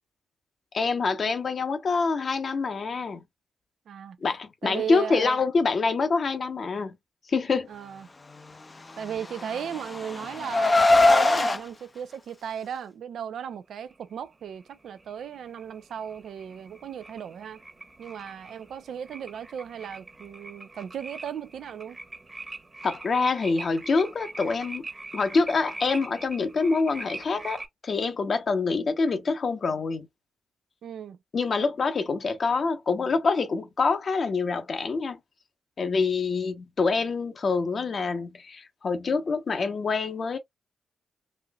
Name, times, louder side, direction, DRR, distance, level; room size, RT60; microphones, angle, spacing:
voice 1, 0.7-3.2 4.2-7.0 7.3-7.7 22.8-24.8 25.1-30.1 31.3-35.2 35.8-40.4, left 4 dB, 55° left, 0.9 m, -26 dB
voice 2, 3.9-4.2 4.6-5.4 7.7-8.1 9.0-17.6 18.0-22.0 30.8-31.2, right 8 dB, 70° right, 0.5 m, -36 dB
Car, 9.1-11.6, left 2 dB, 35° left, 0.5 m, -21 dB
sound 1, 13.9-27.7, right 2 dB, 30° right, 1.1 m, -43 dB
4.3 x 2.6 x 2.3 m
hypercardioid pair, 40°, 0 cm